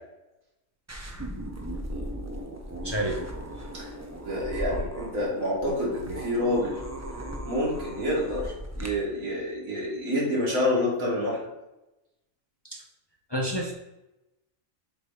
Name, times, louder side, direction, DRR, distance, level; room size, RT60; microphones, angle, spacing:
sound 1, 0.9-8.9, equal, 20° right, 0.5 m, -37 dB
voice 1, 2.8-3.3 12.7-12.8 13.3-13.7, right 1 dB, 25° left, 0 dB, 0.6 m, -29 dB
voice 2, 4.2-6.8 7.4-11.4, left 1 dB, 75° right, -4 dB, 2.5 m, -28 dB
7.2 x 3.0 x 4.8 m, 0.96 s
omnidirectional pair, 1.4 m